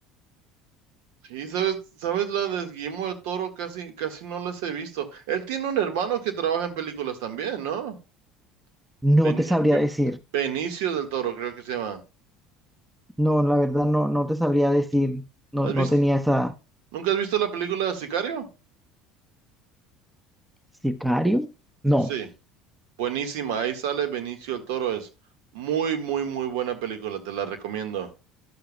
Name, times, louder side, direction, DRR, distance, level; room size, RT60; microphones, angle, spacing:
voice 1, 1.3-8.0 9.2-9.7 10.3-12.0 15.6-15.9 16.9-18.5 22.1-22.3 23.0-25.1 25.5-28.1, right 9 dB, 70° right, 1.5 m, -28 dB
voice 2, 9.0-10.2 13.2-15.2 15.5-16.5 20.8-21.5 21.8-22.1, equal, 5° right, 0.8 m, -21 dB
11.5 x 6.8 x 2.2 m
hypercardioid pair, 70°, 0 cm